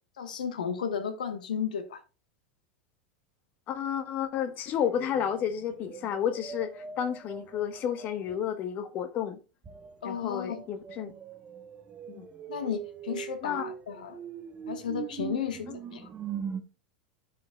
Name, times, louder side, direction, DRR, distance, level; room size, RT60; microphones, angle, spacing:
voice 1, 0.2-2.0 10.0-10.6 12.5-14.2 14.7-16.1, left 7 dB, 70° left, 1.1 m, -34 dB
voice 2, 3.7-9.4 10.0-11.1 12.1-12.3 13.4-13.6 15.7-15.8, left 9 dB, 40° left, 1.1 m, -31 dB
sound 1, 4.8-8.5 9.6-16.6, right 8 dB, 25° right, 0.9 m, -41 dB
13.5 x 5.1 x 2.2 m
figure-of-eight pair, 85°, 5 cm